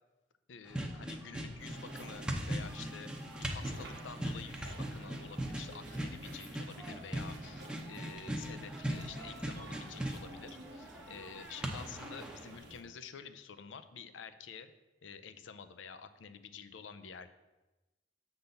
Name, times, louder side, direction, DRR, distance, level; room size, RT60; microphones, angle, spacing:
voice 1, 0.5-3.1 3.4-14.7 15.0-17.3, left 6 dB, 90° left, 11 dB, 0.6 m, -49 dB
sound 1, 0.7-12.6, right 1 dB, 5° right, 0.7 m, -40 dB
sound 2, 1.6-12.8, right 1 dB, 60° right, 1.2 m, -52 dB
6.9 x 4.0 x 6.6 m, 1.1 s
head